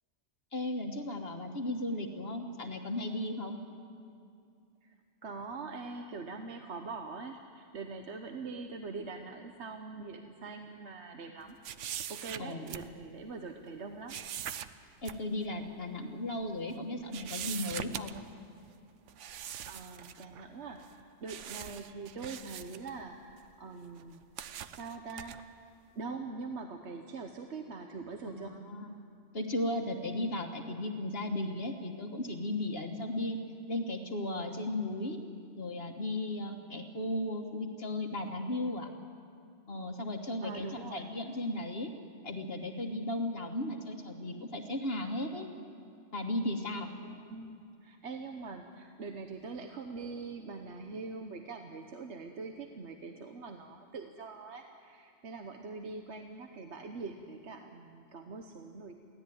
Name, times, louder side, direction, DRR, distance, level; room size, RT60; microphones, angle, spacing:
voice 1, 0.5-3.6 12.4-12.7 15.0-18.1 28.3-28.9 29.3-33.4 33.7-35.2 35.6-38.9 39.7-41.9 42.2-45.5 46.1-46.9, left 1 dB, 55° left, 4 dB, 1.6 m, -35 dB
voice 2, 5.2-11.6 12.1-14.2 19.4-24.2 24.7-25.4 25.9-28.6 40.4-41.1 47.0-59.0, right 4 dB, 70° right, 5 dB, 1.3 m, -43 dB
sound 1, 11.6-13.3 14.1-15.2 15.6-15.7 16.4-16.8 17.1-18.4 19.1-20.5 20.8-21.0 21.3-23.5 24.0-25.4, right 9 dB, 85° right, 1.1 m, -42 dB
23.5 x 16.0 x 9.3 m, 2.5 s
omnidirectional pair, 1.2 m